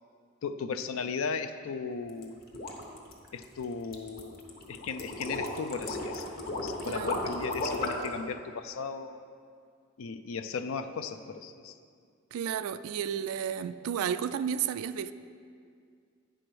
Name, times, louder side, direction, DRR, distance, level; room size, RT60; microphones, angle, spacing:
voice 1, 0.4-2.4 3.3-4.4 4.7-6.3 6.6-9.2 10.0-11.7, left 5 dB, 70° left, 9 dB, 0.4 m, -36 dB
sound 1, 2.1-8.1, left 2 dB, 45° left, 1.1 m, -35 dB
voice 2, 6.8-7.2 12.3-15.1, right 8 dB, 85° right, 13 dB, 0.3 m, -32 dB
9.5 x 4.9 x 6.1 m, 2.2 s
head